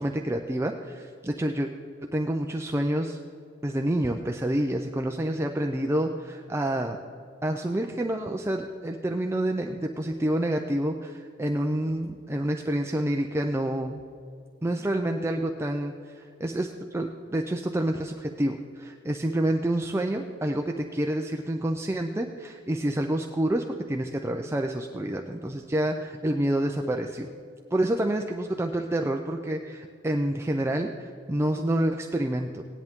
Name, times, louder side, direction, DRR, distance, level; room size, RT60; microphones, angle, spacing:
voice 1, 0.0-1.7 2.1-3.2 3.6-6.1 6.5-7.0 7.4-14.0 14.6-27.3 27.7-32.6, right 1 dB, 15° right, 3 dB, 0.5 m, -28 dB
17.0 x 10.5 x 3.6 m, 2.3 s
head